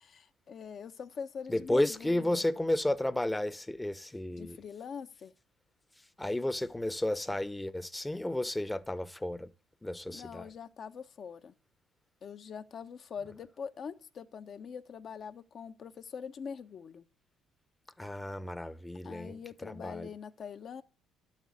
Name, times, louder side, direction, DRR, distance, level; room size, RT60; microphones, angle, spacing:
voice 1, 0.0-2.4 4.4-5.3 10.1-11.5 12.2-17.0 19.0-20.8, left 6 dB, 50° left, 1.2 m, -43 dB
voice 2, 1.5-4.6 6.2-9.5 9.8-10.5 18.0-20.1, left 1 dB, 10° left, 1.0 m, -32 dB
12.5 x 7.3 x 9.7 m
supercardioid pair, 65°, 0 cm